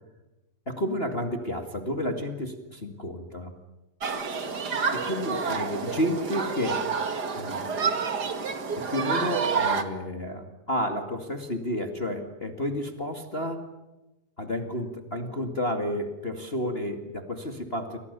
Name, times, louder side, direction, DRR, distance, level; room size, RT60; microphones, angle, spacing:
voice 1, 0.6-3.5 4.7-6.8 7.3-7.8 8.9-13.6 14.4-18.0, equal, 80° left, 5 dB, 0.5 m, -31 dB
Human group actions, 4.0-9.8, right 5 dB, 65° right, 0.9 m, -29 dB
30.0 x 25.0 x 6.9 m, 1.0 s
omnidirectional pair, 5.1 m